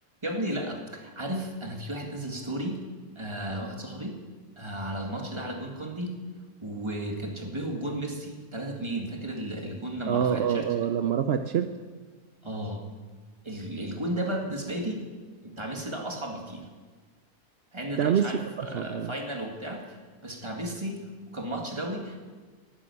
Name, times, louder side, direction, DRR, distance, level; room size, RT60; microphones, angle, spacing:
voice 1, 0.2-2.8 3.2-4.2 4.6-6.1 6.6-10.6 12.4-12.8 13.4-15.0 15.4-16.7 17.7-20.0 20.2-21.0 21.3-22.3, right 1 dB, 15° right, 1 dB, 2.0 m, -34 dB
voice 2, 10.0-11.8 18.0-19.1, right 8 dB, 65° right, 9 dB, 0.6 m, -26 dB
11.5 x 10.5 x 9.7 m, 1.4 s
omnidirectional pair, 1.7 m